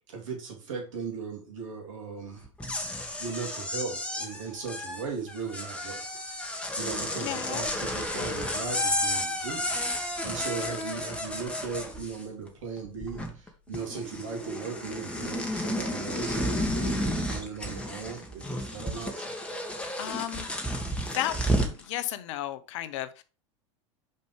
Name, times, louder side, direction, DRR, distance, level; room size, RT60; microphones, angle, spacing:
voice 1, 0.1-2.4 3.2-6.2 6.8-9.8 10.2-19.3, right 5 dB, 80° right, 3.0 m, -37 dB
sound 1, 2.4-12.5 12.8-13.5 13.7-21.8, equal, 5° left, 1.9 m, -32 dB
voice 2, 7.1-7.7 10.7-10.8 20.0-20.5 21.1-23.2, left 13 dB, 70° left, 0.9 m, -34 dB
5.4 x 5.4 x 5.1 m
hypercardioid pair, 85°, 16 cm